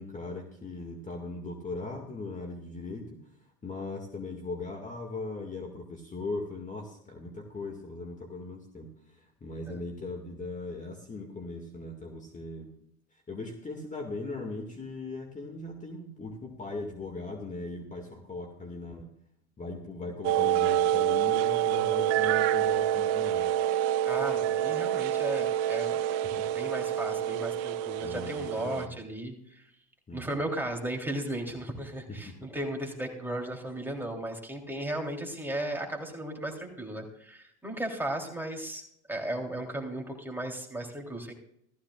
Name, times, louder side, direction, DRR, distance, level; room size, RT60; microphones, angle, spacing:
voice 1, 0.0-3.2 3.6-12.7 13.3-19.1 19.6-23.5 28.0-29.0 30.1-30.3 32.1-32.4, left 3 dB, 20° left, 3 dB, 2.1 m, -39 dB
sound 1, 20.2-28.9, right 11 dB, 70° right, 0.8 m, -27 dB
voice 2, 24.1-26.0 26.5-29.7 30.1-38.8 39.1-41.3, right 1 dB, 5° right, 1 dB, 3.5 m, -35 dB
16.0 x 14.0 x 2.5 m, 0.72 s
hypercardioid pair, 85°, 35 cm